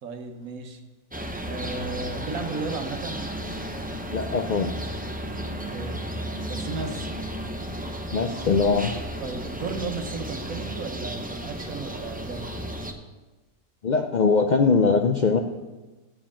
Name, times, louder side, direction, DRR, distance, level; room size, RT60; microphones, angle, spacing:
voice 1, 0.0-0.8 1.4-3.3 5.4-6.0 6.4-7.2 9.2-12.5, right 4 dB, 70° right, 6 dB, 1.4 m, -35 dB
sound 1, 1.1-12.9, equal, 15° right, 0.3 m, -33 dB
voice 2, 4.1-4.7 8.1-8.9 13.8-15.4, left 4 dB, 85° left, 5 dB, 0.4 m, -21 dB
7.5 x 7.4 x 7.2 m, 1.2 s
omnidirectional pair, 1.5 m